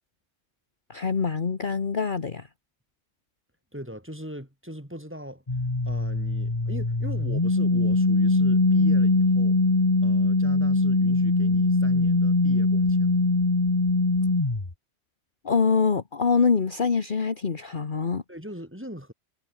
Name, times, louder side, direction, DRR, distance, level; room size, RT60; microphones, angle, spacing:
voice 1, 0.9-2.5 15.4-18.2, left 5 dB, 45° left, 1.4 m, -24 dB
voice 2, 3.7-5.4 5.8-9.6 10.0-13.2 18.3-19.1, equal, 10° right, 5.8 m, -40 dB
sound 1, 5.5-14.7, left 2 dB, 25° left, 1.9 m, -22 dB
omnidirectional pair, 1.2 m